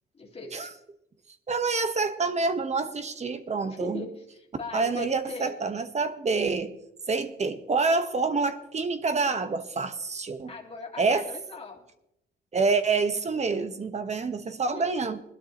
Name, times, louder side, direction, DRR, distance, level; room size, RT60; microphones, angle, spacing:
voice 1, 0.1-0.7 3.7-5.5 10.5-11.8 14.7-15.0, left 3 dB, 30° left, -2 dB, 2.2 m, -39 dB
voice 2, 1.5-4.1 4.7-6.7 7.1-10.5 11.0-11.3 12.5-15.2, right 4 dB, 35° right, 9 dB, 1.2 m, -27 dB
20.5 x 12.5 x 3.0 m, 0.84 s
cardioid pair, 90°, 20 cm